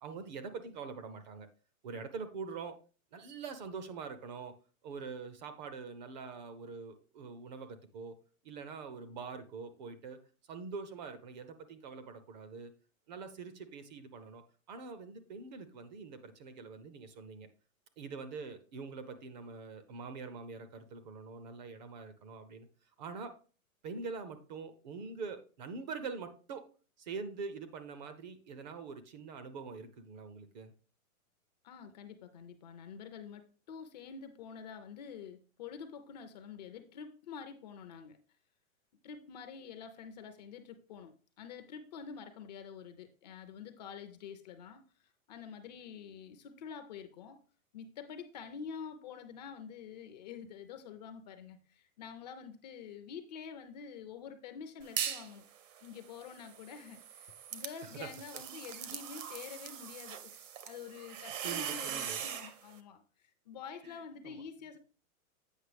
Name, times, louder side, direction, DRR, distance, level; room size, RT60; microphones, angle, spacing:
voice 1, 0.0-1.5 1.8-2.8 3.1-4.5 4.8-8.2 8.4-10.2 10.5-12.7 13.1-14.4 14.7-17.5 18.0-22.7 23.0-23.3 23.8-26.6 27.0-30.7 57.9-58.1 58.8-59.0 61.2-62.3 63.8-64.4, right 5 dB, 35° right, 10 dB, 0.5 m, -44 dB
voice 2, 31.6-38.2 39.0-47.4 47.7-55.4 55.8-64.8, left 6 dB, 30° left, 8 dB, 0.5 m, -47 dB
sound 1, 54.8-55.3 55.7-62.5, right 9 dB, 60° right, 0.9 m, -41 dB
8.2 x 5.5 x 3.3 m, 0.37 s
hypercardioid pair, 150°, 42 cm